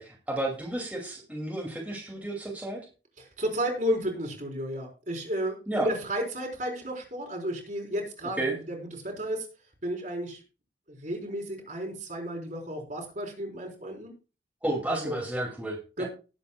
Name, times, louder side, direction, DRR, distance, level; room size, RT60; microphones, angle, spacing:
voice 1, 0.0-2.8 5.7-5.9 8.4-8.6 14.6-16.0, right 1 dB, 10° right, -3 dB, 2.6 m, -32 dB
voice 2, 3.2-9.5 9.8-10.4 10.9-14.1 14.9-15.2 16.0-16.1, equal, 45° right, 1 dB, 4.1 m, -33 dB
19.5 x 8.2 x 2.3 m, 0.33 s
head